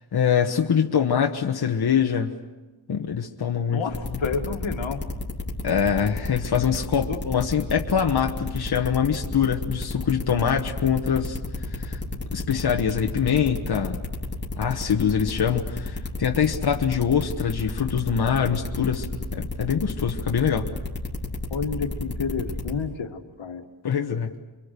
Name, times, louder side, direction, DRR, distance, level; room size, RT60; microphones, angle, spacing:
voice 1, 0.0-2.3 2.9-4.2 5.6-11.4 11.7-12.0 12.3-14.0 14.6-19.1 19.3-20.7 23.8-24.3, left 7 dB, 55° left, 2 dB, 1.3 m, -24 dB
voice 2, 3.5-5.0 7.1-7.2 21.5-23.7, left 5 dB, 80° left, 4 dB, 2.2 m, -30 dB
sound 1, 3.9-22.7, left 3 dB, 25° left, 3.4 m, -31 dB
28.5 x 24.5 x 6.8 m, 1.2 s
wide cardioid pair, 175°, 46 cm